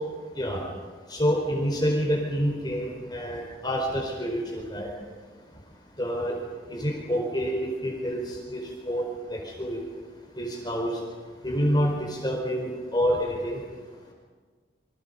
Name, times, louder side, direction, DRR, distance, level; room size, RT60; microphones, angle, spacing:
voice 1, 1.1-4.9 6.0-6.3 6.7-7.5 7.8-8.6 8.9-9.0 9.3-9.8 10.4-11.0 11.4-13.6, equal, 25° left, 0 dB, 4.5 m, -27 dB
28.5 x 25.0 x 5.5 m, 1.5 s
head